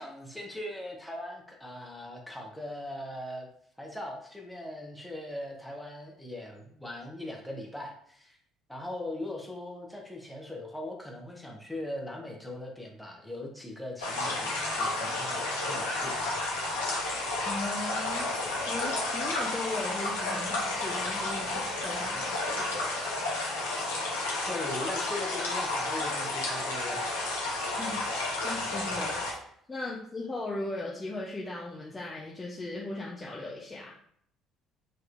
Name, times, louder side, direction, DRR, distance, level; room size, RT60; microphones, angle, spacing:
voice 1, 0.0-3.5 3.8-8.4 8.7-16.3 24.4-27.2, left 1 dB, 5° left, -1 dB, 1.1 m, -40 dB
sound 1, 14.0-29.3, left 2 dB, 85° left, 1.0 m, -31 dB
voice 2, 17.5-18.3 18.6-22.9 27.7-29.2 29.7-34.0, left 2 dB, 25° left, -3 dB, 0.8 m, -38 dB
5.1 x 3.0 x 2.6 m, 0.65 s
hypercardioid pair, 55°, 0 cm